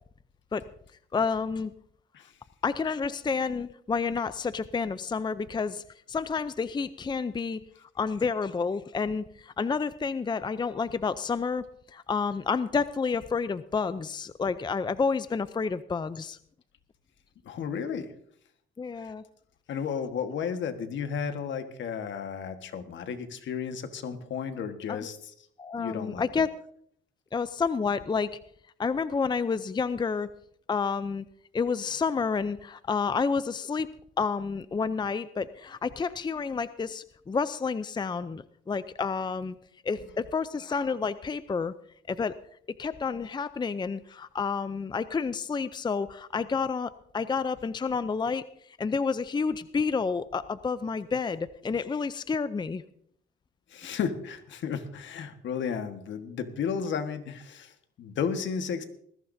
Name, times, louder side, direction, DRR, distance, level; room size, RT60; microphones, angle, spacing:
voice 1, 1.1-1.7 2.6-5.8 6.1-7.6 8.0-11.6 11.9-16.4 18.8-19.2 24.9-25.1 25.6-26.5 27.3-28.3 28.8-30.3 30.7-31.2 31.5-33.9 34.2-39.5 39.8-41.7 42.1-42.3 42.8-48.4 48.8-52.8, left 5 dB, 20° left, 14 dB, 0.5 m, -29 dB
voice 2, 17.4-18.1 19.0-19.1 19.7-25.3 25.8-26.3 53.7-58.8, left 7 dB, 70° left, 8 dB, 1.5 m, -33 dB
20.0 x 15.5 x 2.7 m, 0.65 s
cardioid pair, 90°, 20 cm